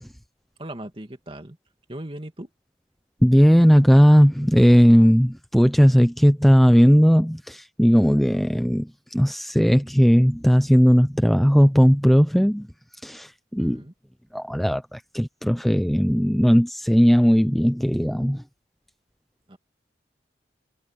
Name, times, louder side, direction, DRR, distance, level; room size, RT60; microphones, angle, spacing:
voice 1, 0.6-1.6 1.9-2.5 13.6-13.9 19.5-19.6, right 1 dB, 30° right, 2.4 m, -38 dB
voice 2, 3.2-12.7 13.0-13.8 14.3-18.4, equal, ahead, 0.4 m, -17 dB
head